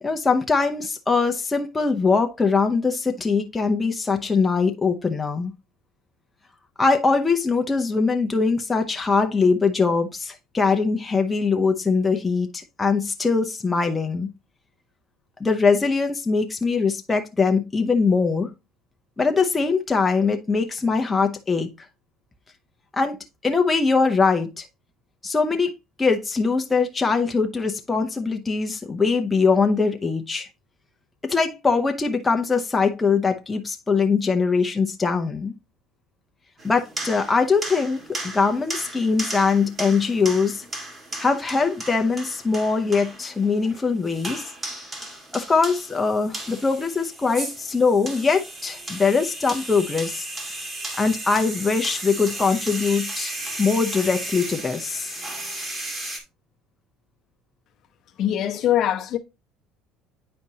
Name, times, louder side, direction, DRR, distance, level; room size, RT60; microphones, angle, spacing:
voice 1, 0.0-5.5 6.8-14.3 15.4-18.5 19.2-21.7 22.9-23.2 23.4-24.6 25.2-25.7 26.0-30.5 31.2-35.5 36.6-40.7 41.2-44.5 45.3-50.3 51.0-55.1, left 4 dB, 15° left, 0.7 m, -22 dB
sound 1, 36.6-56.2, right 1 dB, 20° right, 1.7 m, -35 dB
voice 2, 58.2-59.2, left 11 dB, 45° left, 0.8 m, -22 dB
9.6 x 4.3 x 2.8 m
cardioid pair, 130°, 0 cm